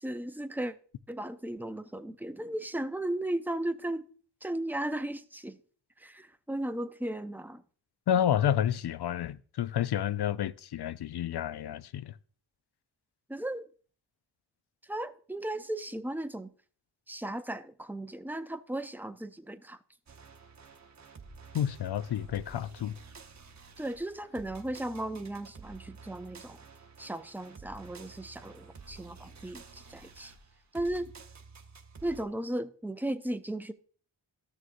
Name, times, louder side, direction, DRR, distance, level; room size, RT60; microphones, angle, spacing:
voice 1, 0.0-0.8 1.1-4.1 4.4-5.6 6.0-7.6 13.3-13.7 14.9-16.5 17.1-19.8 23.8-26.6 27.0-30.3 30.7-31.1 32.0-33.7, right 1 dB, 5° right, 0.5 m, -36 dB
voice 2, 8.1-12.1 21.5-22.9, left 10 dB, 60° left, 0.5 m, -30 dB
sound 1, 20.1-32.3, right 4 dB, 35° right, 1.0 m, -51 dB
14.0 x 6.4 x 2.5 m
cardioid pair, 80°, 47 cm